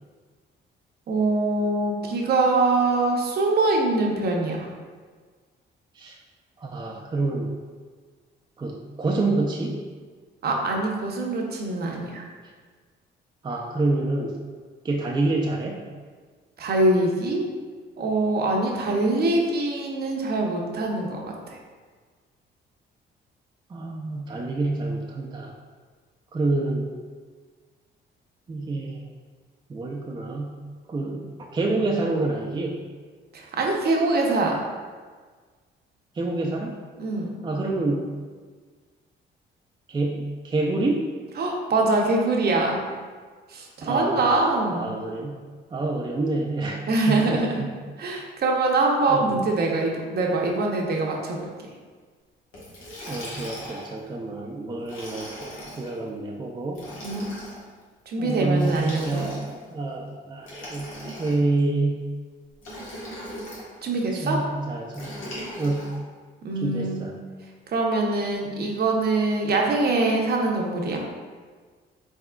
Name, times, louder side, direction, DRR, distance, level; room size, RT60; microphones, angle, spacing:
voice 1, 1.1-4.7 10.4-12.2 16.6-17.5 18.0-21.6 33.3-34.7 37.0-37.4 41.4-42.8 43.5-44.9 46.9-47.6 48.0-51.5 57.0-57.3 58.1-59.3 63.8-64.4 66.4-67.1 67.7-71.0, right 2 dB, 55° right, 0 dB, 0.7 m, -24 dB
voice 2, 6.6-7.5 8.6-9.8 13.4-14.4 14.8-15.9 23.7-25.5 26.3-26.9 28.5-29.0 29.7-30.6 30.9-32.8 36.1-36.8 37.4-38.1 39.9-41.1 43.8-45.4 45.7-47.7 48.0-48.1 49.1-49.4 53.1-56.8 58.2-62.1 64.1-65.9 66.6-67.1, right 2 dB, 20° right, -2 dB, 0.4 m, -27 dB
Liquid, 52.5-54.0 54.8-55.9 56.7-57.6 58.5-59.6 60.4-61.6 62.6-63.7 64.9-65.9, equal, 90° left, 1.2 m, -38 dB
4.1 x 3.6 x 2.3 m, 1.5 s
cardioid pair, 90°, 20 cm